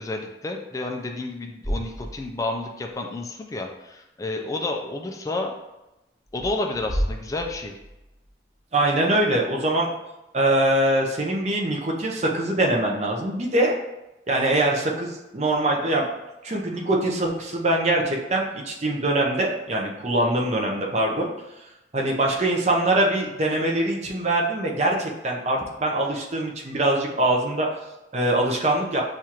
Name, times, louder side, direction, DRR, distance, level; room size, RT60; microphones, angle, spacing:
voice 1, 0.0-5.5 6.3-7.8, left 2 dB, 20° left, 2 dB, 0.3 m, -30 dB
sound 1, 1.6-2.6 2.9-3.0 6.2-8.3, equal, 5° right, 1.1 m, -31 dB
voice 2, 8.7-9.9 10.3-13.7 14.3-16.1 16.4-21.3 21.9-27.7 28.1-29.0, right 1 dB, 35° right, -1 dB, 0.6 m, -23 dB
6.2 x 2.4 x 2.8 m, 0.97 s
head